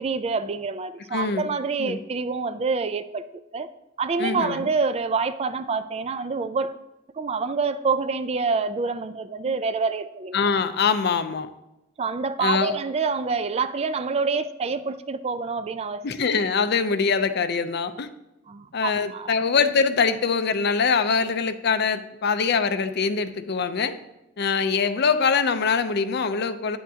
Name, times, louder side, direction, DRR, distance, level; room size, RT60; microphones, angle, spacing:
voice 1, 0.0-3.3 3.5-3.7 4.0-6.7 7.1-10.4 12.0-16.0 16.4-16.5 18.5-19.3, right 4 dB, 30° right, 12 dB, 0.4 m, -27 dB
voice 2, 1.1-1.5 1.8-2.0 4.2-4.7 9.5-9.6 10.3-11.5 12.4-12.8 16.0-18.1 18.7-24.0 24.4-26.8, left 5 dB, 60° left, 11 dB, 0.5 m, -23 dB
9.4 x 8.5 x 2.8 m, 0.94 s
head